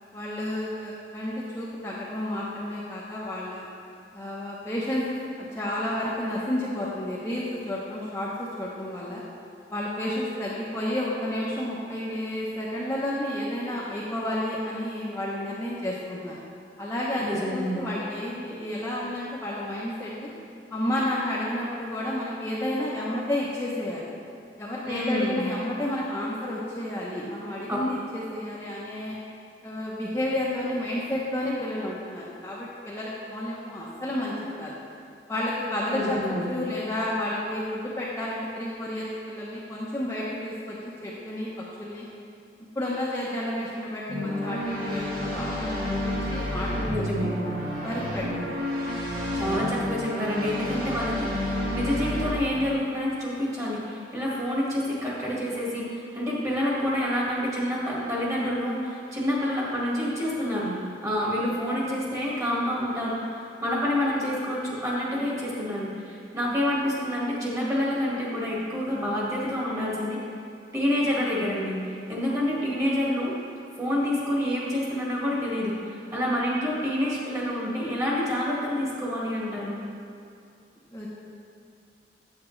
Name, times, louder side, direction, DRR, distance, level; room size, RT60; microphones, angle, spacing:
voice 1, 0.1-3.6 4.1-9.2 9.7-16.4 16.8-20.3 20.7-24.1 24.6-29.2 29.6-34.7 35.3-36.2 36.5-42.0 42.7-46.9 47.2-47.4 47.8-48.3 80.9-81.1, left 1 dB, 15° left, -7 dB, 0.9 m, -31 dB
voice 2, 17.2-17.8 24.8-25.4 27.7-27.8 35.9-36.5 46.9-47.3 49.3-63.2 63.6-70.2 70.7-71.7 72.1-73.3 73.8-79.8, left 1 dB, 20° right, -6 dB, 1.8 m, -28 dB
sound 1, 44.1-52.3, left 1 dB, 55° right, 1.5 m, -30 dB
8.5 x 8.3 x 3.2 m, 2.5 s
head